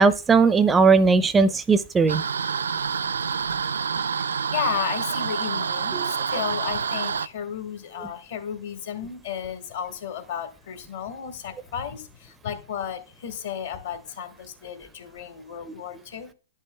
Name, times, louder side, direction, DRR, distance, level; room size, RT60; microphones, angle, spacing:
voice 1, 0.0-2.2 5.9-6.1, right 4 dB, 15° right, 0.4 m, -18 dB
sound 1, 2.1-7.3, right 6 dB, 80° right, 0.3 m, -27 dB
voice 2, 4.5-12.0 12.4-16.3, left 8 dB, 60° left, 1.6 m, -33 dB
10.5 x 5.4 x 2.2 m
hypercardioid pair, 115°, 0 cm